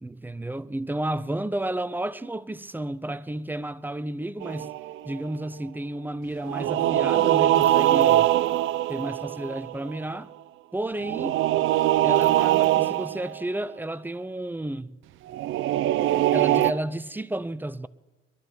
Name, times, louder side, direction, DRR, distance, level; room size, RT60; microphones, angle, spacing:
voice 1, 0.0-4.7 5.0-8.3 8.9-10.3 10.7-11.4 12.0-15.0 16.3-17.9, right 1 dB, 10° right, 0.6 m, -32 dB
sound 1, 4.4-5.3 6.4-10.0 11.0-13.4 15.3-16.7, right 13 dB, 80° right, 0.5 m, -22 dB
21.5 x 12.5 x 4.5 m
cardioid pair, 90°, 20 cm